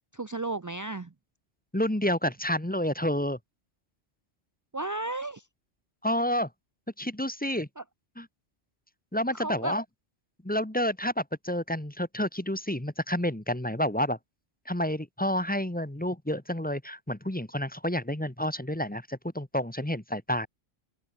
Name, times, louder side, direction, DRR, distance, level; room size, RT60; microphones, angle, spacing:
voice 1, 0.1-1.1 4.7-5.5 7.8-7.9 9.3-9.7, right 2 dB, 30° right, 0.3 m, -34 dB
voice 2, 1.7-3.4 6.0-6.5 7.0-7.7 8.2-8.3 9.1-9.8 10.4-14.2 14.7-20.5, left 1 dB, 5° left, 1.3 m, -29 dB
open air
omnidirectional pair, 1.3 m